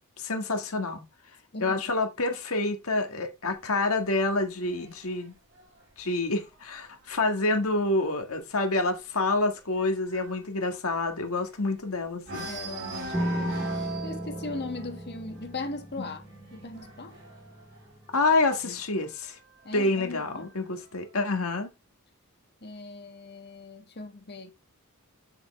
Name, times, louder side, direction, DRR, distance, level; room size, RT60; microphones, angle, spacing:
voice 1, 0.2-1.0 1.6-5.3 6.0-12.5 16.0-16.1 18.1-19.4 19.7-21.7, left 2 dB, 65° left, 1.8 m, -27 dB
voice 2, 1.5-2.0 12.5-16.2 16.5-17.2 18.6-18.8 19.6-20.5 22.6-24.5, left 3 dB, 50° left, 1.6 m, -39 dB
sound 1, 3.5-7.1 7.5-7.8 8.1-8.2 8.6-11.8 12.2-18.7 19.6-20.6, right 2 dB, 55° right, 3.1 m, -42 dB
Piano, 13.1-18.4, right 1 dB, 5° left, 4.4 m, -36 dB
7.1 x 6.7 x 3.3 m
head